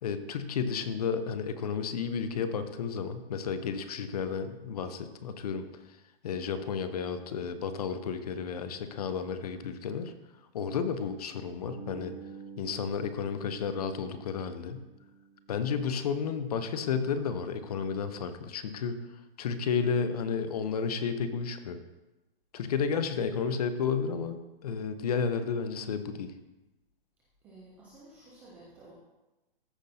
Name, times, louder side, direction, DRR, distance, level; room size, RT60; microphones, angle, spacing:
voice 1, 0.0-5.6 6.2-10.1 10.5-12.1 12.6-14.8 15.5-19.0 19.4-21.8 22.5-26.3, left 6 dB, 40° left, 10 dB, 0.7 m, -32 dB
Bass guitar, 11.6-15.7, right 5 dB, 65° left, 3.2 m, -48 dB
voice 2, 27.4-28.9, right 2 dB, 5° right, -6 dB, 0.4 m, -53 dB
14.0 x 6.0 x 2.7 m, 1.0 s
hypercardioid pair, 155°, 30 cm